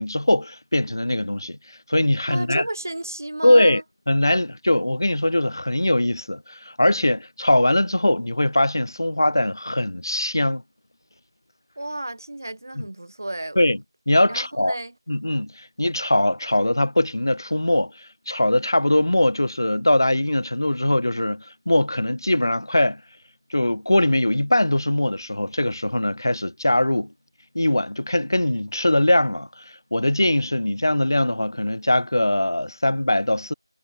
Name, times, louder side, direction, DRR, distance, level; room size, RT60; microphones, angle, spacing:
voice 1, 0.0-1.6 1.9-2.6 3.4-3.8 4.1-10.6 12.8-12.9 13.6-13.8 14.1-14.7 15.1-23.0 23.5-27.1 27.5-33.5, left 1 dB, 50° left, 0.7 m, -21 dB
voice 2, 2.3-3.8 11.8-13.6 14.3-14.9, right 1 dB, 35° right, 1.2 m, -32 dB
figure-of-eight pair, 180°, 3 cm